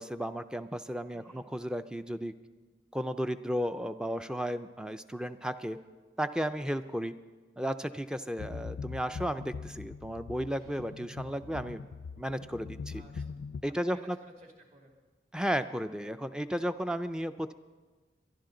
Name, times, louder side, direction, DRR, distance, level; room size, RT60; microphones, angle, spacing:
voice 1, 0.0-2.3 2.9-5.8 6.2-7.1 7.6-11.9 12.2-13.0 13.6-14.2 15.3-17.5, equal, 5° right, 11 dB, 0.4 m, -34 dB
voice 2, 1.1-1.4 6.7-7.1 12.9-13.4 13.6-15.0, equal, 40° right, 1 dB, 2.3 m, -56 dB
sound 1, 8.4-13.6, left 5 dB, 75° left, 0.4 m, -42 dB
sound 2, 10.6-12.3, right 2 dB, 60° right, 6.1 m, -60 dB
23.0 x 11.5 x 3.9 m, 1.3 s
head